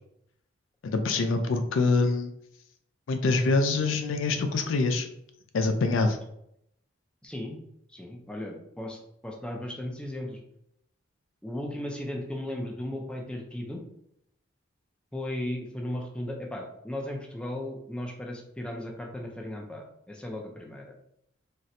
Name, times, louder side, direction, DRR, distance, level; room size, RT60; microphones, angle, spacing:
voice 1, 0.8-2.3 3.1-5.1 5.5-6.2, left 3 dB, 80° left, 7 dB, 0.4 m, -25 dB
voice 2, 7.2-7.6 7.9-10.4 11.4-13.8 15.1-20.9, left 1 dB, 5° left, 0 dB, 0.4 m, -36 dB
4.1 x 2.1 x 2.5 m, 0.75 s
head